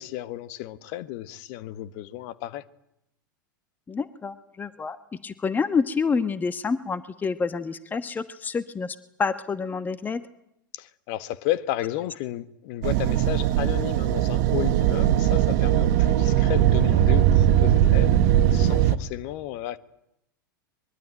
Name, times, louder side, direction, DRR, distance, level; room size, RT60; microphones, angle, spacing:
voice 1, 0.0-2.6 10.7-18.2 18.5-19.8, left 14 dB, 50° left, 1.4 m, -32 dB
voice 2, 3.9-5.0 5.2-10.2, left 5 dB, 15° left, 1.2 m, -28 dB
sound 1, 12.8-19.0, right 11 dB, 50° right, 1.4 m, -20 dB
23.5 x 22.5 x 9.0 m
figure-of-eight pair, 95°, 11 cm